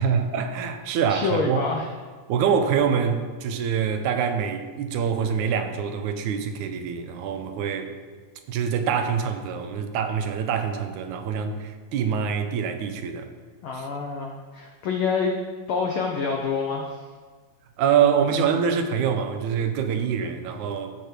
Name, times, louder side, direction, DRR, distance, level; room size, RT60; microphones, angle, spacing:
voice 1, 0.0-1.6 2.3-7.9 8.5-13.3 13.7-13.9 17.8-20.9, right 7 dB, 85° right, 8 dB, 2.2 m, -25 dB
voice 2, 1.1-1.9 13.6-15.4 15.7-17.0, left 5 dB, 90° left, 1 dB, 1.1 m, -27 dB
13.0 x 5.0 x 4.5 m, 1.5 s
omnidirectional pair, 3.3 m